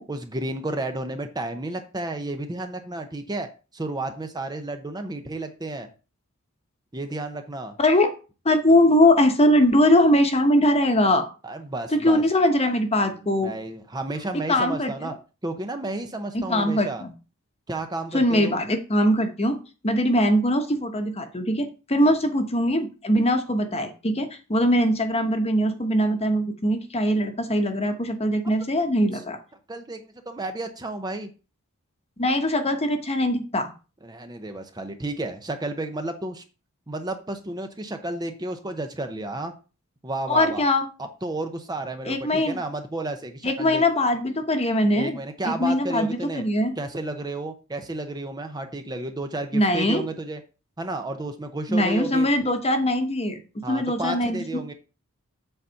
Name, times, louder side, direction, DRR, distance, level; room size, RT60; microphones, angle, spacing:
voice 1, 0.1-3.5 3.7-5.9 6.9-7.8 11.4-12.2 13.0-15.1 15.4-17.0 17.7-18.6 29.7-31.3 34.0-36.4 36.9-39.5 40.0-40.6 41.0-43.8 44.9-46.4 46.8-50.4 50.8-52.3 53.6-54.7, right 2 dB, 20° right, 6 dB, 0.7 m, -32 dB
voice 2, 7.8-8.1 8.4-11.3 11.9-13.5 14.5-15.1 16.3-17.1 18.1-19.6 19.8-29.4 32.2-33.7 40.3-40.9 42.1-42.6 43.4-45.2 45.4-46.7 49.5-50.0 51.7-54.4, left 1 dB, 30° left, 6 dB, 1.1 m, -21 dB
7.9 x 4.1 x 5.7 m, 0.33 s
head